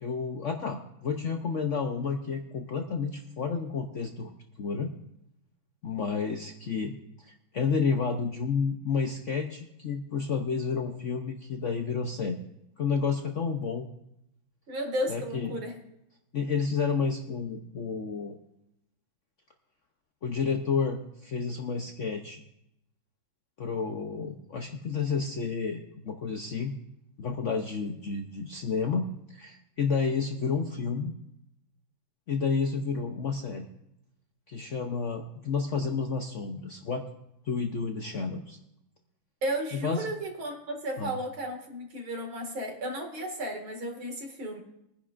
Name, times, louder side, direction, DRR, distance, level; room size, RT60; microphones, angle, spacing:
voice 1, 0.0-4.3 4.6-4.9 5.8-6.9 7.2-12.4 12.8-13.9 15.1-15.5 16.3-18.4 20.2-22.4 23.6-26.7 27.2-31.1 32.3-33.7 34.5-37.0 37.4-38.6 39.7-40.1 41.0-41.2, left 5 dB, 60° left, 3 dB, 0.7 m, -30 dB
voice 2, 14.7-15.8 39.4-44.6, right 1 dB, 80° right, 2 dB, 2.9 m, -34 dB
22.0 x 10.0 x 2.5 m, 0.82 s
omnidirectional pair, 2.2 m